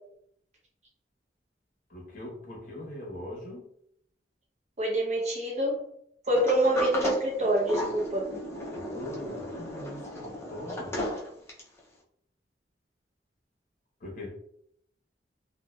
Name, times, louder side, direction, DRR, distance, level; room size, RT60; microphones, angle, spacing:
voice 1, 1.9-3.6 8.7-11.0 14.0-14.3, left 1 dB, 50° left, -2 dB, 0.9 m, -41 dB
voice 2, 4.8-5.9 6.3-8.3, right 1 dB, 40° right, -2 dB, 0.7 m, -26 dB
Sliding door, 6.4-11.8, left 1 dB, 15° left, 0.4 m, -35 dB
2.7 x 2.1 x 2.2 m, 0.70 s
head